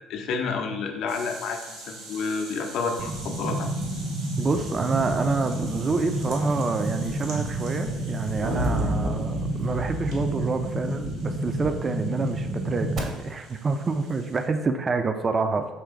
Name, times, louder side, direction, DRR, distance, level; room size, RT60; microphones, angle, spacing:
voice 1, 0.1-3.7, left 4 dB, 55° left, 4 dB, 0.5 m, -30 dB
sound 1, 1.1-14.5, right 2 dB, 65° right, 1.1 m, -45 dB
sound 2, 3.0-13.0, right 1 dB, 50° right, 0.8 m, -30 dB
voice 2, 4.4-15.7, right 4 dB, 30° right, 7 dB, 0.4 m, -27 dB
sound 3, 8.4-11.5, equal, 85° right, 0.7 m, -31 dB
4.4 x 3.0 x 3.7 m, 1.1 s
figure-of-eight pair, 55°, 0 cm